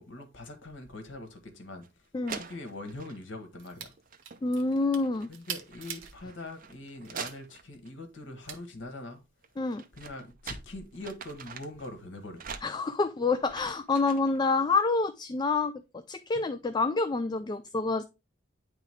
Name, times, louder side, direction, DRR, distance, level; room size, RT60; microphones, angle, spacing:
voice 1, 0.0-3.9 5.3-9.2 9.9-12.5, left 2 dB, 70° left, 1.4 m, -43 dB
sound 1, 1.8-1.9 2.3-3.2 4.0-4.4 4.7-7.9 9.4-11.9 12.4-14.4, right 6 dB, 45° right, 0.6 m, -44 dB
sound 2, 3.6-3.9 4.2-6.1 6.6-7.4 8.5-8.6, right 8 dB, 85° right, 0.9 m, -42 dB
voice 2, 4.4-5.3 9.6-9.8 12.6-18.0, left 3 dB, 20° left, 0.3 m, -28 dB
9.1 x 3.5 x 3.5 m
head